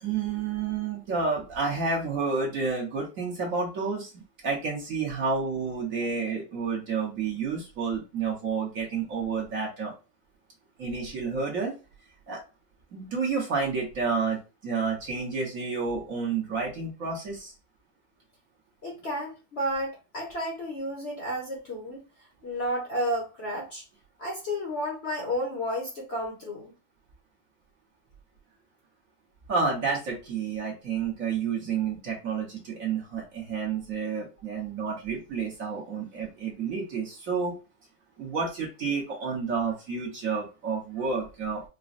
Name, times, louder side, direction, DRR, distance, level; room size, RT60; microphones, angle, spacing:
voice 1, 0.0-9.9 10.8-11.7 12.3-12.4 12.9-17.5 29.5-37.5 38.2-41.6, right 5 dB, 50° right, -2 dB, 1.3 m, -30 dB
voice 2, 18.8-23.8 24.2-26.7, equal, 45° left, -2 dB, 1.0 m, -32 dB
5.0 x 2.2 x 2.4 m, 0.30 s
omnidirectional pair, 2.0 m